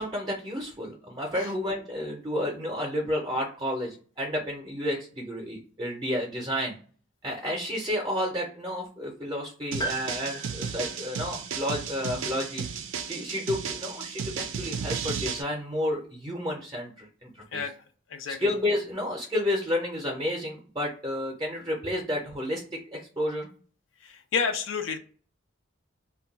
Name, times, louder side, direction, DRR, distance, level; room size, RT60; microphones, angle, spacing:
voice 1, 0.0-6.8 7.2-12.7 13.0-17.6 18.3-22.6 22.9-23.5, left 1 dB, 20° right, -2 dB, 0.6 m, -31 dB
sound 1, 9.7-15.4, right 6 dB, 85° right, 0.4 m, -34 dB
Piano, 9.8-13.7 13.9-14.0 15.2-15.3, right 2 dB, 20° left, 0.5 m, -40 dB
voice 2, 24.0-25.0, left 5 dB, 80° left, 7 dB, 0.4 m, -30 dB
2.2 x 2.2 x 3.9 m, 0.41 s
head